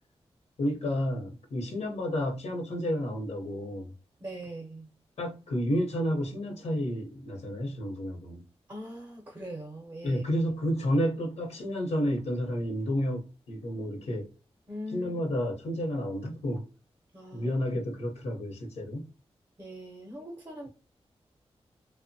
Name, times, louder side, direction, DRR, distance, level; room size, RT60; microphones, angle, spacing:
voice 1, 0.6-3.9 5.2-8.4 10.0-14.3 14.9-16.6 17.3-19.1, equal, 85° left, 0.8 m, -31 dB
voice 2, 4.2-4.9 8.7-10.2 14.7-15.1 17.1-17.5 19.6-20.7, equal, 20° right, 0.5 m, -41 dB
3.0 x 2.0 x 2.6 m
wide cardioid pair, 170°, 11 cm